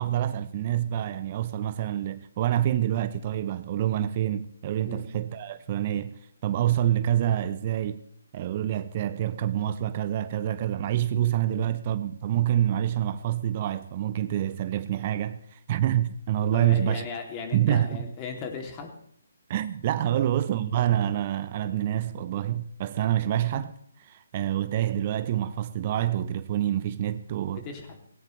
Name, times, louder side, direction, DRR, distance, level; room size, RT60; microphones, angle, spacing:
voice 1, 0.0-8.0 8.3-17.1 17.5-18.1 19.5-23.7 24.0-27.6, right 11 dB, 35° right, 0.7 m, -27 dB
voice 2, 16.5-18.9 20.1-20.2 27.5-28.0, left 5 dB, 25° left, 2.7 m, -37 dB
17.5 x 17.5 x 3.2 m
figure-of-eight pair, 145°, 0 cm